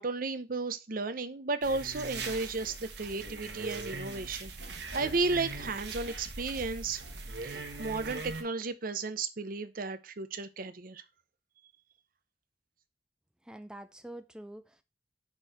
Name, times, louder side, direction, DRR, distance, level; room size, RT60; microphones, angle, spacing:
voice 1, 0.0-7.0 7.4-11.0, right 3 dB, 55° right, 0.7 m, -34 dB
sound 1, 1.6-8.4, right 3 dB, 75° right, 1.4 m, -41 dB
voice 2, 13.4-14.8, right 1 dB, 5° right, 0.4 m, -46 dB
6.1 x 4.6 x 4.8 m
head